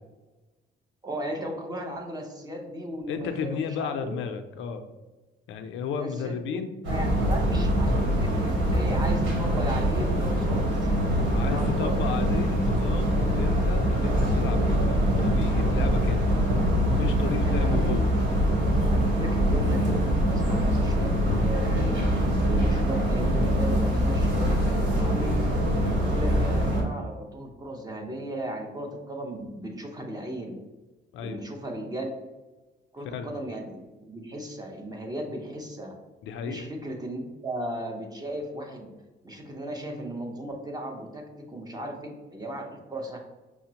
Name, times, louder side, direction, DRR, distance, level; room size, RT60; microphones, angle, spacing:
voice 1, 1.0-4.2 5.9-6.6 6.9-12.3 17.4-17.8 18.9-25.4 25.8-30.6 31.2-32.1 32.9-35.9 36.4-38.9 39.2-43.2, right 1 dB, 20° right, 1 dB, 0.8 m, -36 dB
voice 2, 3.1-4.8 5.5-6.7 11.2-16.2 16.9-18.1 31.1-31.4 33.0-33.3 36.2-36.7, left 6 dB, 75° left, 8 dB, 0.4 m, -33 dB
sound 1, 6.8-26.8, equal, 70° right, 1.2 m, -24 dB
5.7 x 2.0 x 2.8 m, 1.2 s
cardioid pair, 90°, 20 cm